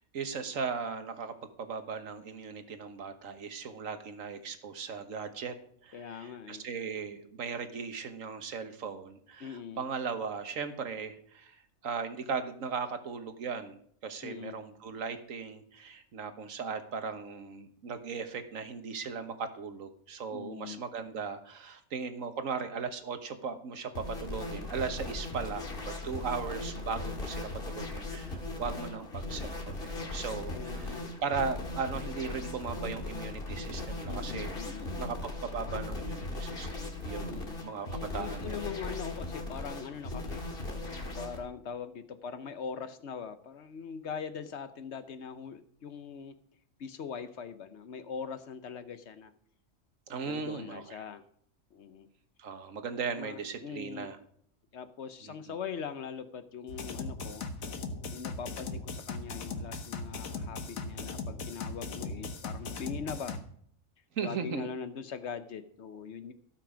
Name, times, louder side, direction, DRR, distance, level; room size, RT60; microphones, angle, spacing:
voice 1, 0.1-5.5 5.8-34.5 35.0-38.6 50.1-51.0 52.4-54.2 55.2-55.5 64.1-64.7, right 5 dB, 75° right, 8 dB, 1.5 m, -38 dB
voice 2, 5.9-6.7 9.4-9.8 14.2-14.6 20.3-20.8 30.5-31.1 34.1-35.2 37.3-37.6 38.1-40.4 41.2-46.3 46.8-49.3 50.2-51.2 51.7-52.1 53.2-54.1 54.7-57.4 58.1-63.3 64.2-66.3, left 6 dB, 60° left, 11 dB, 1.0 m, -41 dB
sound 1, 23.9-41.4, left 2 dB, 45° left, 2.0 m, -38 dB
sound 2, 56.7-63.4, left 3 dB, 90° left, 1.5 m, -38 dB
17.5 x 6.0 x 5.0 m, 0.63 s
omnidirectional pair, 1.4 m